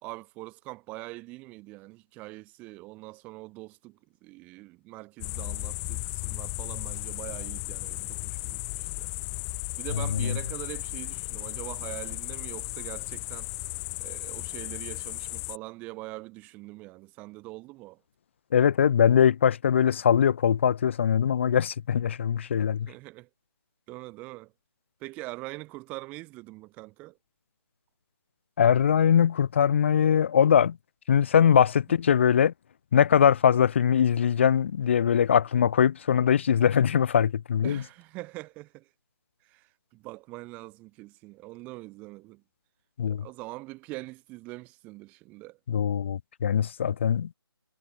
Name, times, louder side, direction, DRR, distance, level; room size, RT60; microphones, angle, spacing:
voice 1, 0.0-9.1 9.8-13.6 14.0-18.0 22.8-23.3 23.9-24.5 25.0-27.2 37.6-38.9 39.4-42.4 43.0-45.6, right 21 dB, 10° right, 1.4 m, -43 dB
sound 1, 5.2-15.6, left 40 dB or more, 15° left, 1.4 m, -35 dB
voice 2, 18.5-22.9 28.6-30.8 31.1-32.5 32.9-37.8 43.0-43.3 45.7-47.3, left 8 dB, 30° left, 0.8 m, -22 dB
figure-of-eight pair, 160°, 14 cm